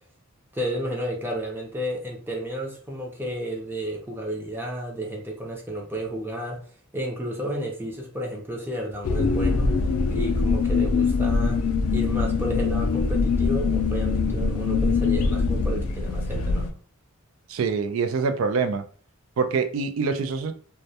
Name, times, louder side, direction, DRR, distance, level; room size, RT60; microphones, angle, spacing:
voice 1, 0.5-6.6 6.9-9.7 10.1-11.6 11.9-16.7, equal, 10° right, -1 dB, 0.5 m, -32 dB
sound 1, 9.0-16.7, left 4 dB, 85° left, 0.4 m, -23 dB
voice 2, 17.5-18.8 19.4-20.5, right 5 dB, 75° right, 9 dB, 0.3 m, -25 dB
2.1 x 2.1 x 2.7 m, 0.43 s
head